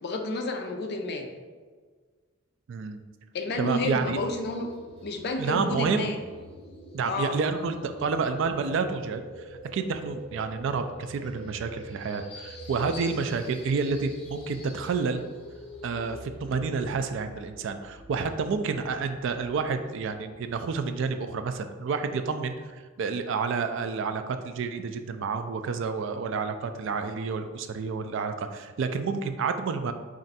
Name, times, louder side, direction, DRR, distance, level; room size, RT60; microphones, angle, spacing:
voice 1, 0.0-1.3 3.3-4.7 5.0-6.2 7.1-7.4, left 2 dB, 50° left, 4 dB, 0.5 m, -30 dB
voice 2, 2.7-3.0 3.6-4.2 5.4-6.2 6.9-9.2 9.7-15.2 15.8-22.5 23.0-29.9, right 5 dB, 60° right, 8 dB, 0.3 m, -29 dB
sound 1, 3.8-20.9, equal, 30° left, 0.8 m, -45 dB
4.3 x 2.5 x 4.0 m, 1.5 s
head